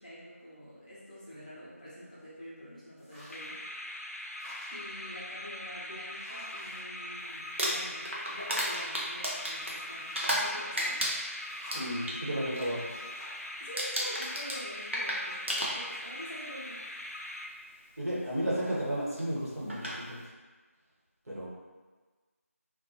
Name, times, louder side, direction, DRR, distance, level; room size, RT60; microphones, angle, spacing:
voice 1, 0.0-3.6 4.7-11.1 13.6-16.8, equal, 30° left, -8 dB, 0.6 m, -46 dB
sound 1, 3.0-3.6 4.0-5.1 5.7-5.8 6.1-7.8 8.2-9.1 9.8-10.8 11.4-12.0 12.8-13.5, equal, 15° right, 0.8 m, -51 dB
sound 2, 3.3-18.0, left 1 dB, 80° left, 0.4 m, -42 dB
Crumpling crinkling, 7.4-10.5 10.8-12.2 12.5-12.9 13.1-13.5 13.8-16.2 17.1-17.2 19.2-19.3 19.7-20.0, equal, 50° right, 0.5 m, -33 dB
voice 2, 11.7-12.8 18.0-20.2 21.3-21.5, equal, 75° right, -7 dB, 1.0 m, -33 dB
2.5 x 2.2 x 2.7 m, 1.3 s
figure-of-eight pair, 170°, 8 cm